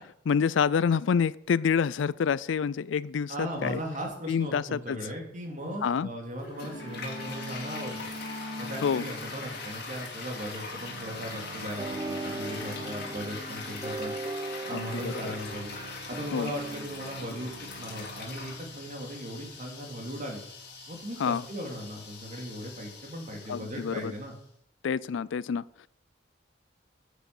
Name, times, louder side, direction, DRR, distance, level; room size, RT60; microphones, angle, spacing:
voice 1, 0.3-3.8 4.3-5.0 5.8-6.1 8.8-9.1 14.7-15.4 16.3-16.5 21.2-21.4 23.5-24.1 24.8-25.6, left 6 dB, 85° left, 20 dB, 0.4 m, -27 dB
voice 2, 3.3-8.0 8.6-14.1 14.7-15.7 16.1-20.4 20.9-24.4, equal, 45° right, 1 dB, 2.6 m, -38 dB
Toilet flush, 6.4-24.3, left 4 dB, 60° left, 2.9 m, -42 dB
sound 1, 6.6-21.1, equal, 75° right, 2.2 m, -45 dB
sound 2, 11.8-16.9, right 2 dB, 20° right, 0.3 m, -38 dB
9.1 x 8.2 x 6.6 m, 0.72 s
head